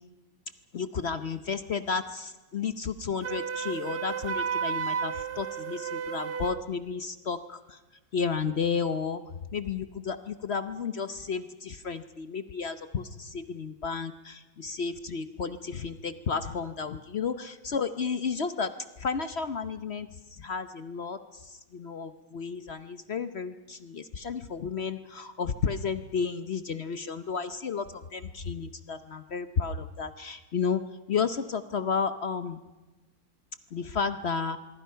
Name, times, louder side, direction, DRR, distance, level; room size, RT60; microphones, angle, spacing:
voice 1, 0.7-7.8 8.1-9.2 9.5-18.7 19.0-30.8 31.1-32.6 33.7-34.6, left 5 dB, 65° left, 11 dB, 0.6 m, -32 dB
Wind instrument woodwind instrument, 3.2-6.6, right 7 dB, 40° right, 0.9 m, -32 dB
25.5 x 22.5 x 5.7 m, 1.1 s
omnidirectional pair, 2.2 m